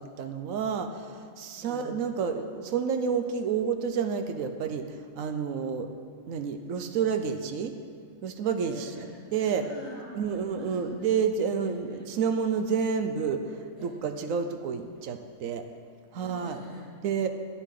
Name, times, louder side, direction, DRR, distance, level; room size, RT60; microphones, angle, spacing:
voice 1, 0.0-4.9 5.2-5.9 6.3-7.7 8.2-8.9 9.3-9.6 10.1-15.6 16.1-16.6 17.0-17.3, right 6 dB, 75° right, 7 dB, 1.1 m, -29 dB
voice 2, 1.5-2.0 8.6-11.0 11.6-12.0 13.8-14.0 16.1-16.9, equal, 30° right, -7 dB, 2.8 m, -47 dB
10.0 x 10.0 x 3.8 m, 2.1 s
omnidirectional pair, 1.4 m